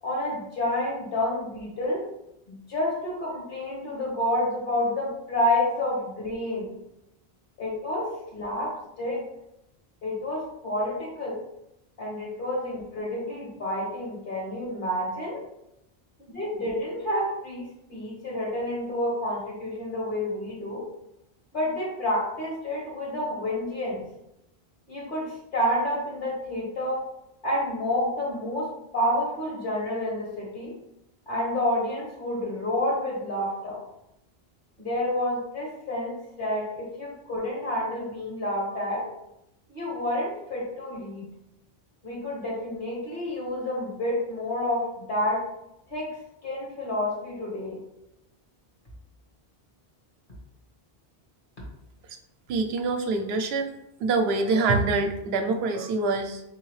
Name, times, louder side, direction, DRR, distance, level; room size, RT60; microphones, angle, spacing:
voice 1, 0.0-2.0 2.5-6.7 7.6-9.2 10.0-11.4 12.0-15.4 16.3-20.8 21.5-24.0 24.9-27.0 27.4-30.7 31.3-33.8 34.8-39.1 39.7-41.3 42.0-45.4 45.9-46.1 46.4-47.8, left 1 dB, 55° left, -3 dB, 1.5 m, -29 dB
voice 2, 52.5-53.7 54.0-56.4, right 3 dB, 80° right, 5 dB, 0.8 m, -25 dB
3.8 x 3.7 x 3.1 m, 0.83 s
omnidirectional pair, 1.0 m